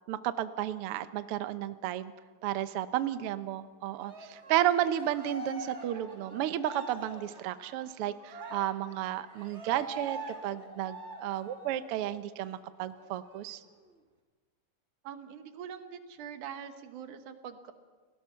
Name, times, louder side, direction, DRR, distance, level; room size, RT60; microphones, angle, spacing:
voice 1, 0.1-2.1 2.4-13.6, right 12 dB, 70° right, 11 dB, 1.4 m, -32 dB
Cheering, 4.0-12.0 12.4-12.5 12.9-13.9, right 2 dB, 25° right, 2.0 m, -45 dB
voice 2, 15.0-17.7, right 8 dB, 90° right, 8 dB, 2.8 m, -43 dB
29.5 x 18.5 x 5.8 m, 1.4 s
omnidirectional pair, 3.4 m